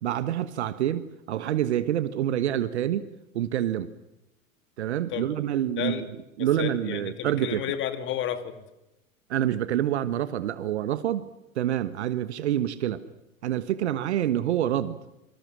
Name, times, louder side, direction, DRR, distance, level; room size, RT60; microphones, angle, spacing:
voice 1, 0.0-3.0 3.3-3.9 4.8-6.1 6.4-7.6 9.3-11.2 11.5-13.0 13.4-15.0, right 11 dB, 55° right, 1.4 m, -27 dB
voice 2, 6.4-8.6, left 10 dB, 30° left, 2.6 m, -32 dB
27.5 x 25.0 x 6.3 m
figure-of-eight pair, 95°, 41 cm